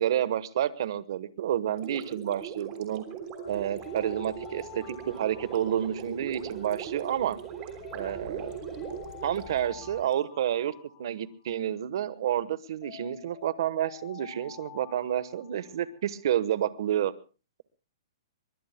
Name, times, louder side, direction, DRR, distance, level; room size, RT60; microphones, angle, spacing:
voice 1, 0.0-3.0 3.5-7.4 7.9-8.5 9.2-10.7 11.0-17.1, right 10 dB, 55° right, 15 dB, 1.1 m, -29 dB
Gurgling, 1.7-10.1, right 7 dB, 25° right, 3.2 m, -40 dB
Alarm, 3.3-6.6 7.8-11.6 12.8-16.1, left 12 dB, 40° left, 5.0 m, -49 dB
sound 1, 3.4-10.0, left 3 dB, 5° left, 3.5 m, -53 dB
25.5 x 22.5 x 2.2 m, 0.34 s
hypercardioid pair, 160°, 3 cm